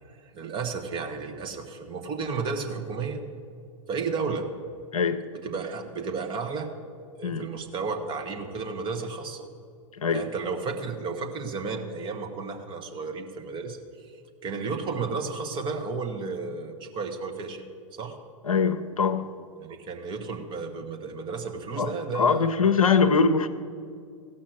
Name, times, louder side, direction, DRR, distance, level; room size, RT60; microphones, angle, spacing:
voice 1, 0.3-3.2 3.9-4.4 5.4-6.7 7.1-9.5 10.1-13.8 14.1-14.2 14.4-17.6 18.0-18.2 19.6-22.6, right 4 dB, 25° right, 4 dB, 1.3 m, -33 dB
voice 2, 4.9-5.2 7.2-7.5 10.0-10.3 18.4-19.3 21.8-23.5, left 5 dB, 75° left, 10 dB, 0.7 m, -23 dB
15.5 x 5.9 x 7.7 m, 2.3 s
figure-of-eight pair, 95°, 18 cm